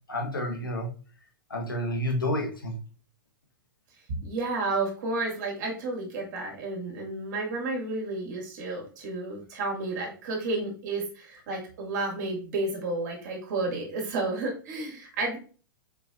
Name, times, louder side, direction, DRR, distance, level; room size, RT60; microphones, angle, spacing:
voice 1, 0.1-0.9 1.5-2.7, left 1 dB, 85° left, 2 dB, 1.2 m, -29 dB
voice 2, 4.1-15.4, right 2 dB, 55° right, 0 dB, 2.0 m, -31 dB
4.6 x 4.0 x 2.4 m, 0.38 s
figure-of-eight pair, 105°, 11 cm